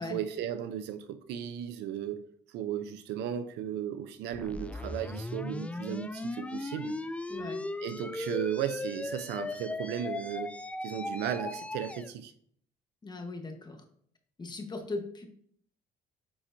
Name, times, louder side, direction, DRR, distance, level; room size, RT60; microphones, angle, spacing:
voice 1, 0.0-2.2 2.5-6.9 7.8-10.5 10.8-12.3, right 9 dB, 80° right, 0.6 m, -35 dB
sound 1, 4.3-12.1, left 2 dB, 10° left, 0.3 m, -37 dB
voice 2, 7.3-7.6 13.0-13.8 14.4-15.3, left 2 dB, 25° left, 1.2 m, -38 dB
8.7 x 4.4 x 2.7 m
cardioid pair, 110°, 17 cm